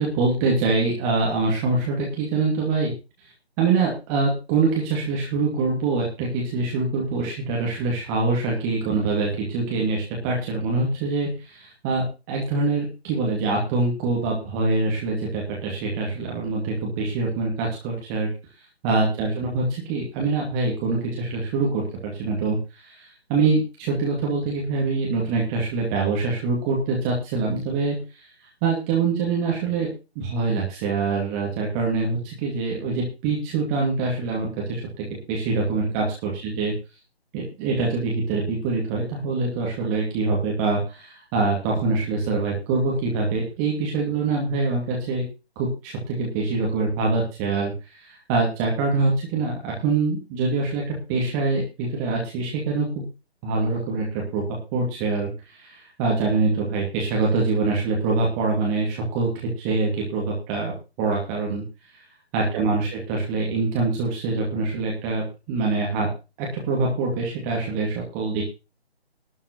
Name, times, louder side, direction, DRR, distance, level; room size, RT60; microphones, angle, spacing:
voice 1, 0.0-2.9 3.6-18.3 18.8-28.3 28.6-29.9 30.2-36.7 37.3-45.2 45.6-53.0 53.4-54.4 54.7-59.3 59.6-61.6 62.3-66.1 66.4-68.4, right 3 dB, 15° right, -2 dB, 2.5 m, -24 dB
12.5 x 5.6 x 7.8 m, 0.30 s
figure-of-eight pair, 150°, 32 cm